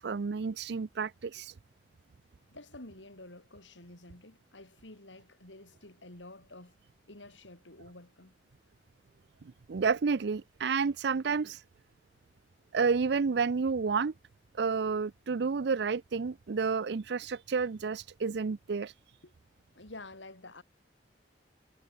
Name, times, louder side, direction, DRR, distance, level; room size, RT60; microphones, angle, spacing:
voice 1, 0.0-1.6 9.7-11.6 12.7-14.1 14.6-19.2, right 5 dB, 65° right, 0.5 m, -30 dB
voice 2, 2.5-6.7 7.1-8.3 19.2-19.3 19.7-20.6, left 2 dB, 90° left, 5.8 m, -50 dB
head